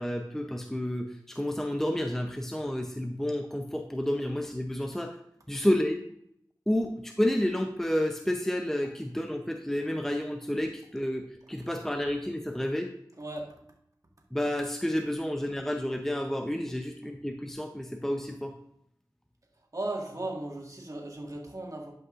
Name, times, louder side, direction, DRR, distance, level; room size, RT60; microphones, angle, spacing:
voice 1, 0.0-5.1 5.5-6.0 6.7-12.9 14.3-18.5, left 1 dB, 5° left, 4 dB, 0.7 m, -30 dB
voice 2, 13.2-13.5 19.7-21.9, right 2 dB, 45° right, -1 dB, 1.9 m, -36 dB
12.0 x 5.3 x 2.5 m, 0.71 s
cardioid pair, 40°, 8 cm